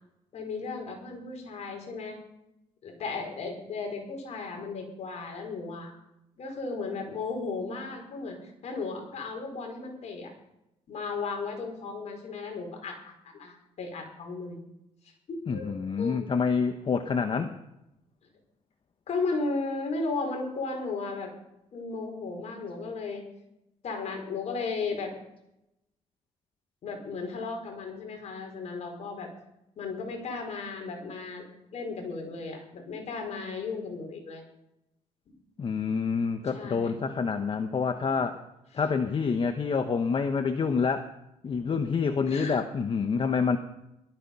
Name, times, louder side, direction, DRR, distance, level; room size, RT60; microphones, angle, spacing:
voice 1, 0.3-2.2 2.8-5.9 6.4-8.4 8.6-10.3 10.9-14.6 15.3-16.3 19.1-21.3 21.7-23.2 23.8-25.1 26.8-29.3 29.8-31.4 31.7-34.4 36.5-36.9 42.2-42.6, left 4 dB, 60° left, 2 dB, 5.0 m, -35 dB
voice 2, 15.5-17.5 35.6-38.4 38.7-41.1 41.4-43.6, left 5 dB, 45° left, 8 dB, 1.1 m, -27 dB
18.5 x 13.0 x 5.5 m, 0.87 s
cardioid pair, 80°, 13 cm